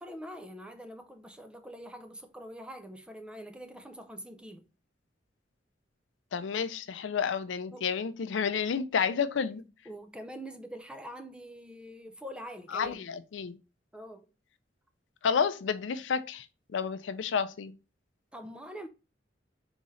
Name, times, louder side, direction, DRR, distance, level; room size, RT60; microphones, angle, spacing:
voice 1, 0.0-4.7 7.7-7.9 9.9-13.1 13.9-14.3 18.3-18.9, equal, 5° right, 0.4 m, -44 dB
voice 2, 6.3-9.6 12.7-13.6 15.2-16.5 16.7-17.7, left 6 dB, 85° left, 0.4 m, -30 dB
4.1 x 3.6 x 3.1 m
head